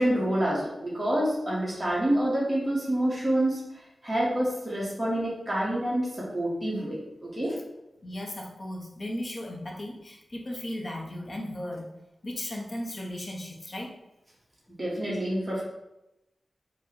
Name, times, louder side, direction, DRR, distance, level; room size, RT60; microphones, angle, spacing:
voice 1, 0.0-3.6 4.0-7.6 14.7-15.6, right 1 dB, 15° right, -7 dB, 1.1 m, -27 dB
voice 2, 8.0-11.9 12.2-14.0, left 1 dB, 35° left, 0 dB, 0.7 m, -36 dB
4.4 x 2.1 x 4.3 m, 0.91 s
wide cardioid pair, 110°, 0 cm